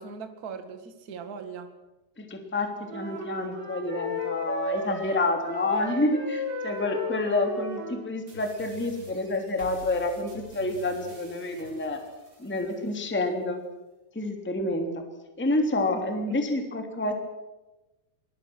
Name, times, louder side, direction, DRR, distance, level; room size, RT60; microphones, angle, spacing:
voice 1, 0.0-1.7 15.9-16.3, right 5 dB, 50° right, 7 dB, 1.1 m, -40 dB
voice 2, 2.2-12.0 12.4-13.6 14.1-14.9 15.4-17.1, left 2 dB, 5° left, 4 dB, 2.0 m, -28 dB
sound 1, 2.9-8.1, left 1 dB, 85° right, 7.3 m, -34 dB
sound 2, 8.3-13.3, right 3 dB, 25° right, 6.0 m, -48 dB
25.5 x 20.5 x 6.2 m, 1.0 s
omnidirectional pair, 5.1 m